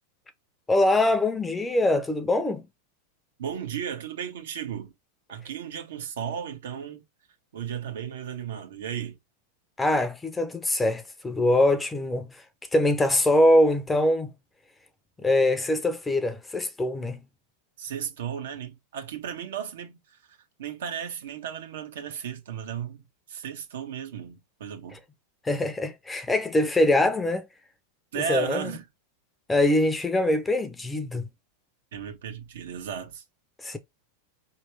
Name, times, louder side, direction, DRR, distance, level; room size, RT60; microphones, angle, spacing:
voice 1, 0.7-2.7 9.8-12.4 12.7-14.3 15.2-17.2 25.4-27.5 28.2-28.7 29.5-31.3 33.6-33.8, left 1 dB, 10° left, 0.6 m, -23 dB
voice 2, 3.4-4.9 5.3-7.0 7.5-9.2 17.8-25.0 28.1-28.8 31.9-33.2, right 8 dB, 85° right, 1.4 m, -35 dB
4.6 x 3.2 x 3.2 m
supercardioid pair, 150°, 0 cm